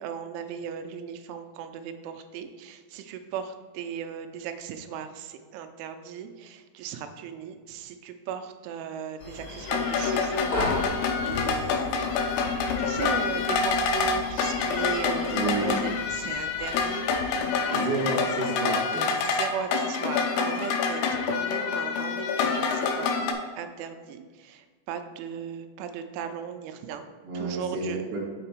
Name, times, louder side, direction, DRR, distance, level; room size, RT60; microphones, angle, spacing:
voice 1, 0.0-18.2 19.0-27.1 27.3-28.0, right 8 dB, 85° right, 7 dB, 3.0 m, -37 dB
sound 1, 9.2-16.9, left 2 dB, 50° left, 2.9 m, -37 dB
sound 2, 9.7-23.3, left 5 dB, 90° left, 2.3 m, -27 dB
voice 2, 15.3-15.7 17.3-19.2 27.2-28.2, right 3 dB, 60° right, -5 dB, 1.5 m, -30 dB
6.5 x 5.9 x 4.5 m, 1.5 s
omnidirectional pair, 5.5 m